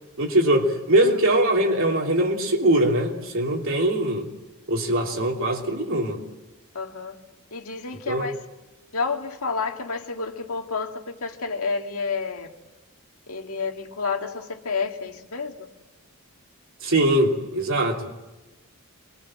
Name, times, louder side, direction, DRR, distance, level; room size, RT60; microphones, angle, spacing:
voice 1, 0.2-4.3 4.7-6.2 8.1-8.3 16.8-18.1, right 1 dB, 65° right, 3.2 m, -22 dB
voice 2, 6.7-7.2 7.5-8.4 8.9-12.5 13.3-15.7, left 4 dB, 75° left, 2.1 m, -30 dB
28.0 x 23.0 x 7.6 m
head